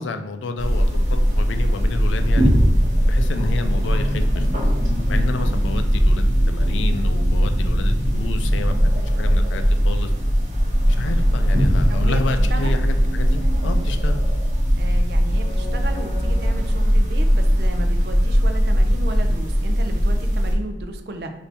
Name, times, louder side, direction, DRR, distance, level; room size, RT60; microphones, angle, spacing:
voice 1, 0.0-2.5 3.1-4.7 5.1-10.1 10.8-14.2, left 3 dB, 90° left, 8 dB, 0.4 m, -30 dB
sound 1, 0.6-20.5, equal, 40° right, 0.9 m, -19 dB
voice 2, 11.9-12.2 12.5-12.8 14.8-21.3, right 2 dB, 60° right, 6 dB, 0.4 m, -34 dB
3.3 x 2.7 x 4.1 m, 1.0 s
head